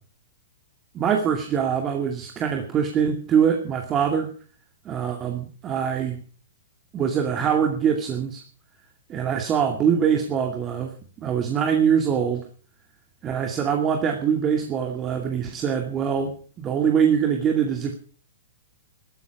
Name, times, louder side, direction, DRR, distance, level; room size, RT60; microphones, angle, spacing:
voice 1, 0.9-4.3 4.8-6.2 6.9-8.4 9.1-10.9 11.2-12.4 13.2-17.9, right 7 dB, 25° right, 4 dB, 2.3 m, -23 dB
15.0 x 13.5 x 6.0 m, 0.42 s
hypercardioid pair, 115°, 0 cm